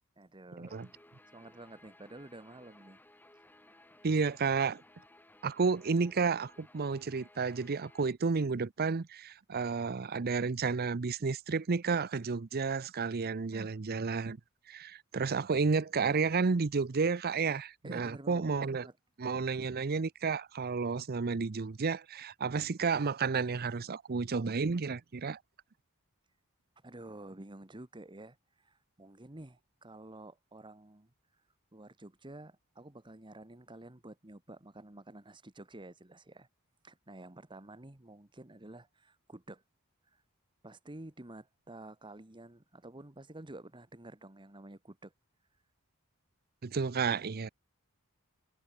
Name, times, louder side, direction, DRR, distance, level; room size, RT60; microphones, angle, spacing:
voice 1, 0.2-0.8 1.3-3.0 13.5-13.8 17.8-19.0 23.7-23.9 26.8-31.1 31.7-36.5 36.8-39.6 40.1-40.2 40.6-45.1, right 1 dB, 25° right, 1.5 m, -50 dB
Guitar, 0.7-8.1, left 1 dB, 10° left, 1.7 m, -60 dB
voice 2, 4.0-4.8 5.4-14.4 14.7-18.9 19.2-25.4 46.6-47.5, right 4 dB, 45° right, 0.6 m, -31 dB
head